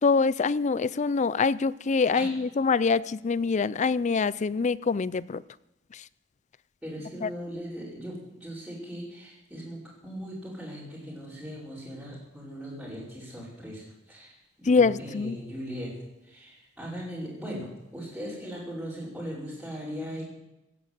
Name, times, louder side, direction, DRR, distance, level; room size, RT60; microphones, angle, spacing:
voice 1, 0.0-5.4 5.9-6.0 7.2-7.3 14.7-15.4, left 4 dB, 40° left, 19 dB, 0.4 m, -25 dB
voice 2, 6.8-16.0 16.2-20.2, equal, 5° right, -10 dB, 5.5 m, -39 dB
17.0 x 9.3 x 8.1 m, 0.93 s
head